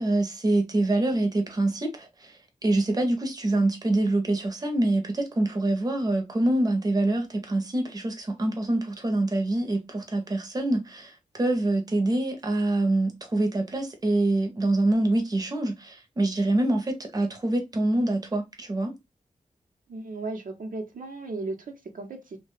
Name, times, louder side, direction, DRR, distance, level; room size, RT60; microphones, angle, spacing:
voice 1, 0.0-2.3 2.6-18.9, right 2 dB, 30° right, 0.6 m, -25 dB
voice 2, 19.9-22.4, right 3 dB, 75° right, 0.7 m, -35 dB
2.8 x 2.2 x 3.0 m
wide cardioid pair, 115°, 14 cm